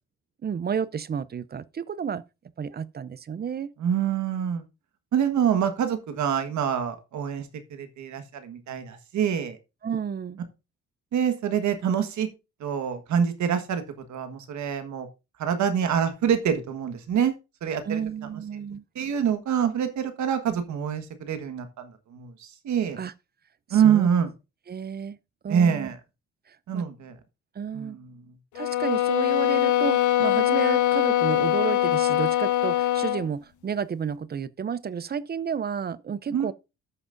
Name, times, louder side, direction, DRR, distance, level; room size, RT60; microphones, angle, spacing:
voice 1, 0.4-2.2 2.6-3.7 9.8-10.4 17.8-18.8 23.0-23.1 23.7-24.1 24.7-25.2 25.4-25.9 26.7-26.9 27.6-28.0 28.5-36.5, right 7 dB, 35° right, 0.5 m, -31 dB
voice 2, 3.8-4.6 5.1-7.5 7.7-9.6 11.1-12.3 12.6-13.8 14.1-15.1 15.4-17.3 17.6-18.0 18.9-22.3 22.6-23.0 23.7-24.3 25.5-25.9 26.7-27.1 27.7-28.1 36.3-36.5, right 8 dB, 70° right, 1.5 m, -25 dB
sound 1, 28.5-33.3, left 13 dB, 75° left, 0.8 m, -23 dB
14.0 x 6.0 x 2.6 m
cardioid pair, 90°, 30 cm